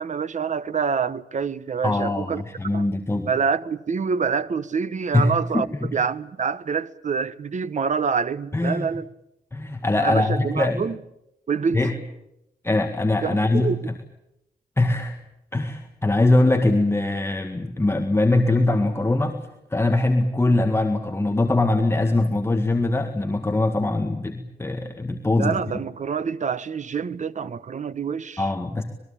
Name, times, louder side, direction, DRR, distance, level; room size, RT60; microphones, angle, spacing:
voice 1, 0.0-2.4 2.7-2.8 3.3-5.7 5.9-9.1 10.0-11.0 11.5-11.8 13.2-13.8 25.4-28.5, right 6 dB, 50° right, 1.0 m, -26 dB
voice 2, 1.8-3.3 5.1-6.0 8.5-8.9 9.5-10.8 11.7-11.9 12.6-13.7 14.8-15.2 15.5-19.4 19.7-25.6 28.4-28.8, left 2 dB, 15° left, 1.8 m, -22 dB
26.0 x 21.0 x 8.7 m
wide cardioid pair, 145°, 16 cm